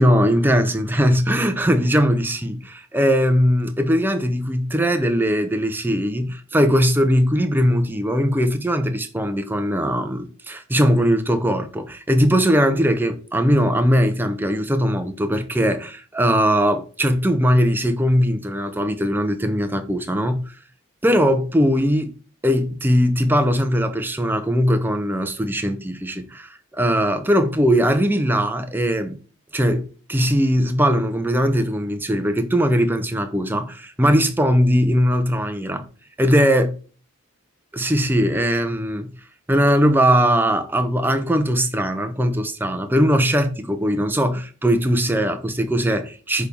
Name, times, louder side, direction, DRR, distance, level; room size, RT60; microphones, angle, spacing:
voice 1, 0.0-20.5 21.0-22.1 22.4-29.2 29.5-35.8 36.2-36.8 37.7-39.1 39.5-46.5, equal, 10° right, 0.6 m, -20 dB
6.5 x 3.5 x 5.3 m
head